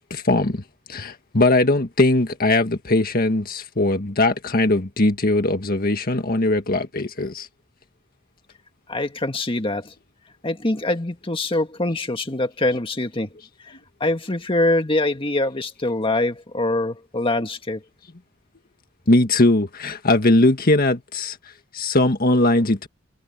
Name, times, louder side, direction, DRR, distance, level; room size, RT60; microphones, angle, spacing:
voice 1, 0.1-0.6 0.9-7.5 19.1-21.4 21.7-22.9, left 2 dB, 45° left, 1.7 m, -20 dB
voice 2, 8.9-9.9 10.4-13.3 13.6-17.8, left 2 dB, 25° left, 1.9 m, -24 dB
head